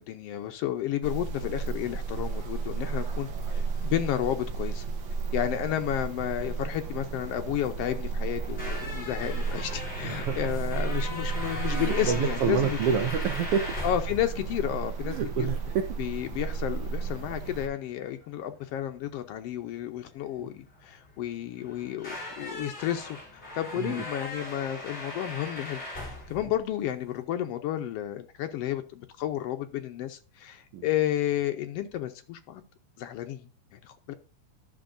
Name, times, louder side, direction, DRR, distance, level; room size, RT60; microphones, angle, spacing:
voice 1, 0.0-4.9 5.3-13.0 13.8-15.5 16.0-32.6 33.0-34.1, left 11 dB, 85° left, 1.4 m, -32 dB
sound 1, 1.0-17.7, right 4 dB, 55° right, 1.4 m, -33 dB
sound 2, 8.3-27.2, left 2 dB, 20° left, 2.7 m, -40 dB
voice 2, 10.0-10.4 11.7-13.8 15.0-16.0 20.4-20.5 23.8-23.9 30.7-30.8, right 7 dB, 85° right, 1.3 m, -28 dB
12.5 x 6.1 x 2.5 m
omnidirectional pair, 3.5 m